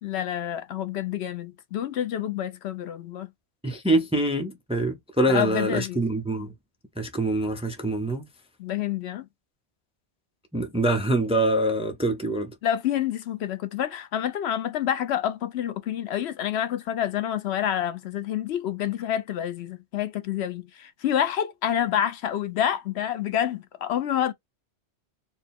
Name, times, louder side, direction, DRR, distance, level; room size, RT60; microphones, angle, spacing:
voice 1, 0.0-3.3 5.3-6.0 8.6-9.3 12.6-24.3, left 10 dB, 75° left, 0.9 m, -28 dB
voice 2, 3.6-6.5 7.0-8.3 10.5-12.5, right 1 dB, 5° right, 0.5 m, -25 dB
4.4 x 2.2 x 3.5 m
omnidirectional pair, 1.1 m